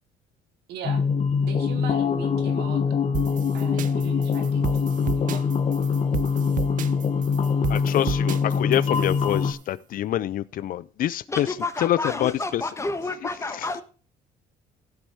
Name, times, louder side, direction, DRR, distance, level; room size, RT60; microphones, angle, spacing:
voice 1, 0.7-1.0 1.4-3.0 3.5-4.6 5.0-5.5, right 6 dB, 75° right, 2.2 m, -39 dB
sound 1, 0.8-9.5, left 6 dB, 40° left, 1.1 m, -24 dB
sound 2, 3.1-9.5, right 12 dB, 50° right, 0.5 m, -33 dB
voice 2, 7.7-12.7 13.2-13.8, left 12 dB, 55° left, 0.5 m, -27 dB
voice 3, 11.3-13.8, left 3 dB, 15° left, 1.3 m, -30 dB
15.5 x 5.4 x 4.8 m
cardioid pair, 110°, 17 cm